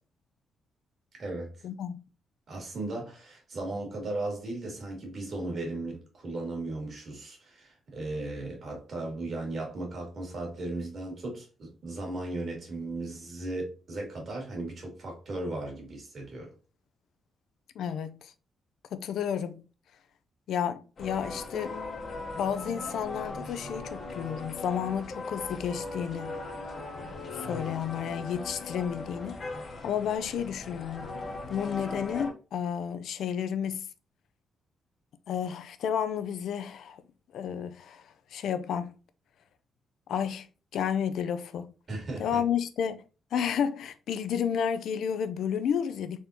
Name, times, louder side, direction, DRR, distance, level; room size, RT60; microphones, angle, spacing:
voice 1, 1.2-1.5 2.5-16.5 41.9-42.4, right 2 dB, 40° right, 2.0 m, -36 dB
voice 2, 17.8-18.3 18.9-19.7 20.5-21.8 22.4-26.4 27.3-29.4 29.8-31.2 31.5-33.9 35.3-37.0 37.3-38.9 40.1-40.5 40.7-41.7 42.2-43.1 43.3-46.3, left 8 dB, 70° left, 0.5 m, -31 dB
sound 1, 21.0-32.3, left 3 dB, 40° left, 0.9 m, -39 dB
4.2 x 3.6 x 2.7 m
cardioid pair, 155°, 0 cm